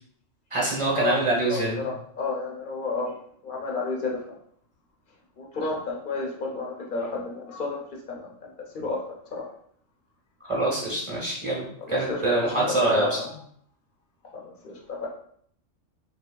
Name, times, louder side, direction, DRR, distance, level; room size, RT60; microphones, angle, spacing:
voice 1, 0.5-1.9 10.4-13.1, right 2 dB, 30° right, -5 dB, 0.8 m, -25 dB
voice 2, 1.5-3.1 3.4-4.4 5.4-9.5 11.8-13.3 14.3-15.1, left 3 dB, 55° left, 0 dB, 0.6 m, -32 dB
3.3 x 3.0 x 2.2 m, 0.64 s
omnidirectional pair, 1.4 m